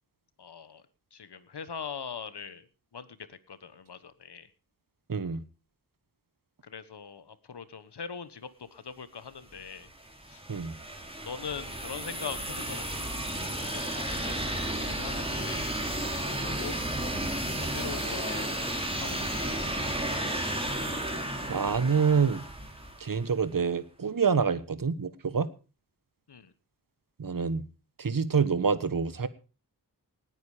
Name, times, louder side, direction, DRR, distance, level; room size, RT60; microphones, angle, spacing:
voice 1, 0.4-0.8 1.1-2.7 2.9-4.5 6.6-9.9 10.3-10.4 11.2-13.0 13.4-14.5 14.7-15.7 16.2-16.7 17.5-18.5 19.0-19.6 26.3-26.5, left 6 dB, 85° left, 14 dB, 1.4 m, -41 dB
voice 2, 5.1-5.4 10.5-10.7 21.5-22.4 23.0-25.5 27.2-27.6 28.0-29.3, right 5 dB, 55° right, 14 dB, 1.3 m, -27 dB
sound 1, 9.6-23.3, right 1 dB, 15° right, 3.5 m, -33 dB
19.0 x 9.3 x 5.0 m, 0.35 s
wide cardioid pair, 75°, 39 cm